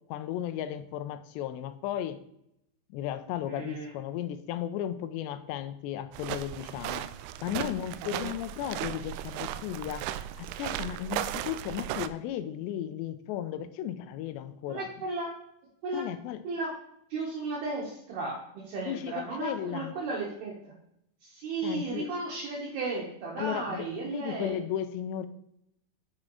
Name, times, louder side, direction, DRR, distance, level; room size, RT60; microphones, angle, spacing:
voice 1, 0.1-2.2 2.9-7.1 7.4-10.1 10.4-14.9 15.9-16.4 18.9-20.0 21.6-22.1 23.4-25.3, left 11 dB, 80° left, 11 dB, 2.8 m, -35 dB
voice 2, 3.5-3.9 7.5-7.7 8.1-8.3 14.7-15.3 15.8-16.0 16.5-16.7 17.1-20.7 21.2-24.6, right 3 dB, 65° right, -4 dB, 3.5 m, -34 dB
sound 1, 6.1-12.1, right 13 dB, 85° right, 2.3 m, -36 dB
7.9 x 7.5 x 4.9 m, 0.76 s
omnidirectional pair, 5.1 m